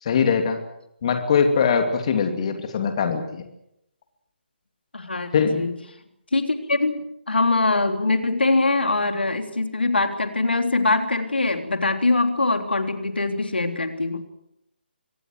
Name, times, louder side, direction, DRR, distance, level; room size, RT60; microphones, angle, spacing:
voice 1, 0.0-0.6 1.0-3.4 5.3-5.7, left 6 dB, 35° left, 6 dB, 2.8 m, -22 dB
voice 2, 4.9-5.7 6.3-14.3, left 2 dB, 70° left, 6 dB, 3.5 m, -23 dB
25.0 x 19.5 x 8.0 m, 0.81 s
figure-of-eight pair, 145°, 6 cm